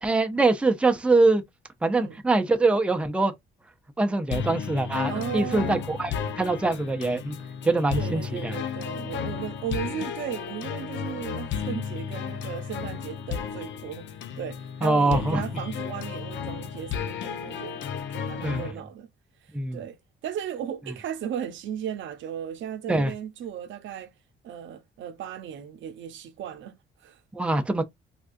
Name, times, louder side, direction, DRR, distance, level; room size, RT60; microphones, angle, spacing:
voice 1, 0.0-1.4 1.8-3.3 4.0-7.4 7.6-8.6 14.8-15.4 18.4-18.6 19.5-19.8 22.9-23.1 27.3-27.8, right 2 dB, 5° right, 0.5 m, -23 dB
sound 1, 4.3-18.7, left 7 dB, 65° left, 0.5 m, -33 dB
voice 2, 5.1-5.9 8.0-17.8 18.1-19.1 19.7-24.1 24.4-27.2, right 9 dB, 70° right, 0.6 m, -36 dB
3.5 x 2.3 x 2.5 m
cardioid pair, 90°, 20 cm